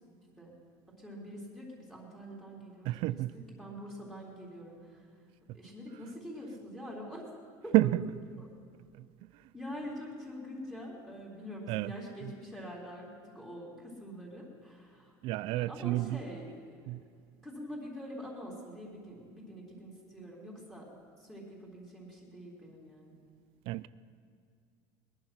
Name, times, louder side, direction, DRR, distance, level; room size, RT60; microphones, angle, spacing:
voice 1, 1.0-5.0 5.5-7.3 7.6-7.8 8.4-8.5 9.5-15.1 15.5-16.6 17.4-20.8 21.2-23.1, equal, 5° left, 3.7 m, -45 dB
voice 2, 2.8-3.4 7.7-8.1 8.9-9.0 11.7-11.9 12.2-12.3 15.2-16.2 16.9-17.0 23.7-23.9, right 17 dB, 60° right, 0.4 m, -30 dB
21.0 x 10.5 x 6.0 m
cardioid pair, 140°, 11 cm